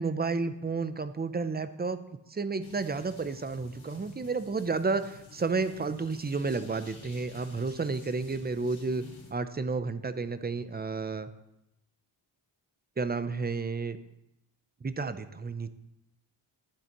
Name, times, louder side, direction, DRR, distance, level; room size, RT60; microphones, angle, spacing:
voice 1, 0.0-2.0 2.3-9.0 9.3-11.3 13.0-14.0 14.8-15.7, right 4 dB, 20° right, 12 dB, 0.5 m, -31 dB
sound 1, 2.6-9.3, left 3 dB, 80° left, 2.5 m, -51 dB
11.5 x 9.5 x 3.0 m, 0.86 s
wide cardioid pair, 85°, 47 cm